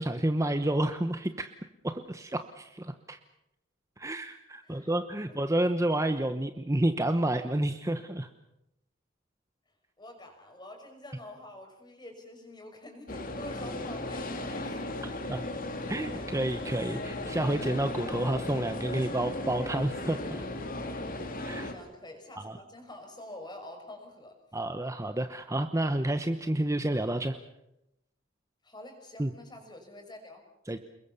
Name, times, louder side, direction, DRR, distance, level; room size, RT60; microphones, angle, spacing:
voice 1, 0.0-1.5 1.8-3.2 4.0-8.3 15.0-15.4 15.9-20.4 21.4-21.7 22.4-22.6 24.5-27.3 29.2-29.3 30.7-30.8, right 1 dB, 15° right, 8 dB, 0.9 m, -30 dB
voice 2, 10.0-15.1 21.6-24.4 28.6-30.4, left 1 dB, 20° left, 4 dB, 5.7 m, -47 dB
sound 1, 13.1-21.7, left 1 dB, 45° left, 2.9 m, -36 dB
29.0 x 21.5 x 7.0 m, 0.86 s
head